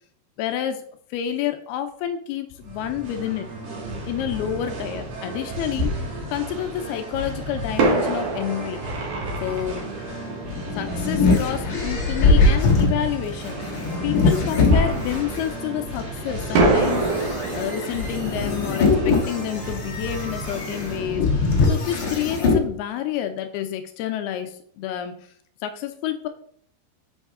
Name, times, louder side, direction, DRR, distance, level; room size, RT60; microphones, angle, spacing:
voice 1, 0.4-0.8 1.1-3.5 4.1-8.8 9.4-9.9 10.8-17.1 17.5-25.2 25.6-26.3, left 10 dB, 85° left, 7 dB, 2.3 m, -29 dB
Singing, 2.6-21.7, right 1 dB, 80° right, 4.7 m, -34 dB
Fireworks, 4.5-4.6 5.8-6.9 7.8-11.2 14.7-16.1 16.5-21.1 21.3-21.4 22.0-22.2, right 2 dB, 60° right, 2.3 m, -26 dB
sound 1, 10.4-15.4 16.0-22.6, left 3 dB, 55° left, 1.3 m, -22 dB
7.5 x 6.3 x 3.6 m, 0.63 s
omnidirectional pair, 5.0 m